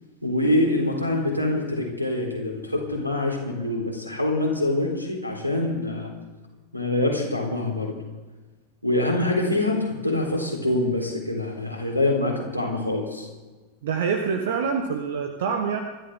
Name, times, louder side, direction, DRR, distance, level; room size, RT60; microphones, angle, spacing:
voice 1, 0.2-6.1 6.7-7.9 8.8-13.3, left 2 dB, 90° right, 1 dB, 4.1 m, -25 dB
voice 2, 13.8-15.8, right 6 dB, 60° right, 5 dB, 1.4 m, -26 dB
26.5 x 12.5 x 3.8 m, 1.3 s
figure-of-eight pair, 90°, 0 cm